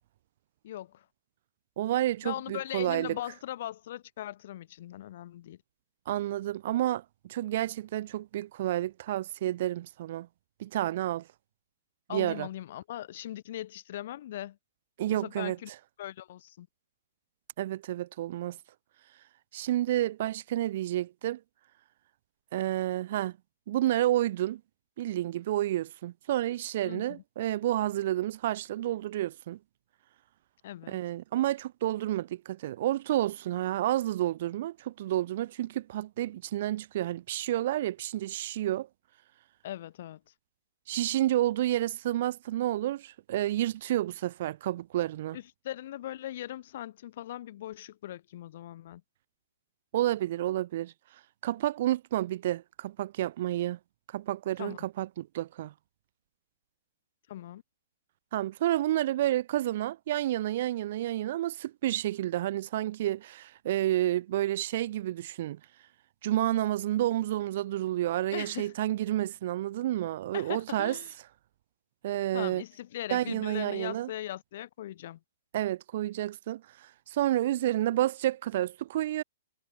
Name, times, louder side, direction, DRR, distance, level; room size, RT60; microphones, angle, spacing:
voice 1, 0.6-1.0 2.2-5.6 12.1-14.6 15.1-15.7 16.0-16.7 26.8-27.2 30.6-31.0 39.6-40.2 45.3-49.0 54.6-54.8 57.3-57.6 68.3-68.7 70.3-71.1 72.3-75.2, left 13 dB, 55° left, 1.8 m, -39 dB
voice 2, 1.8-3.2 6.1-10.3 10.6-11.3 12.1-12.5 15.0-15.6 17.6-18.6 19.5-21.4 22.5-23.4 23.7-24.6 25.0-29.6 30.9-38.9 40.9-45.4 49.9-50.9 51.4-53.8 54.1-55.7 58.3-65.6 66.2-71.0 72.0-72.6 73.1-74.1 75.5-79.2, right 13 dB, 55° right, 0.5 m, -30 dB
hypercardioid pair, 150°, 0 cm